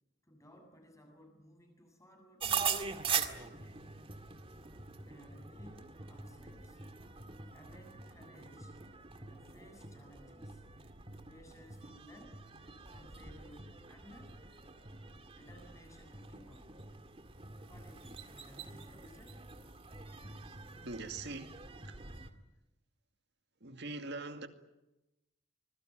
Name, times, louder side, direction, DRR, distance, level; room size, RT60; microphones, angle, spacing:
voice 1, 0.2-2.6 3.4-3.8 5.0-6.8 7.4-8.8 9.1-10.6 11.1-12.4 12.9-14.4 15.3-17.0 17.7-19.5, equal, 15° left, 7.6 m, -58 dB
sound 1, 2.4-22.3, right 6 dB, 30° right, 2.0 m, -43 dB
voice 2, 20.2-22.0 23.6-24.5, right 3 dB, 55° right, 2.2 m, -44 dB
25.5 x 21.5 x 9.0 m
head